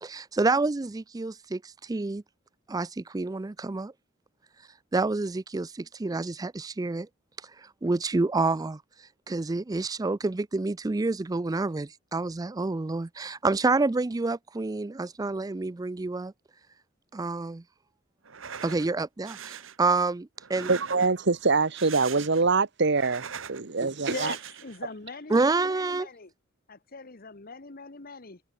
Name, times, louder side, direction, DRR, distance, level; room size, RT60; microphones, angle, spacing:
voice 1, 0.0-2.2 2.7-3.9 4.9-7.1 7.8-8.8 9.3-16.3 17.1-17.6 18.6-20.7 25.3-26.1, right 3 dB, 20° right, 0.4 m, -28 dB
sound 1, 18.2-18.9 19.2-19.8 20.4-21.3 21.6-22.5 22.8-23.6 24.0-24.8, right 7 dB, 75° right, 1.3 m, -41 dB
voice 2, 20.7-24.3, right 4 dB, 60° right, 1.2 m, -24 dB
voice 3, 24.1-26.3 26.7-28.4, left 3 dB, 50° left, 1.5 m, -41 dB
head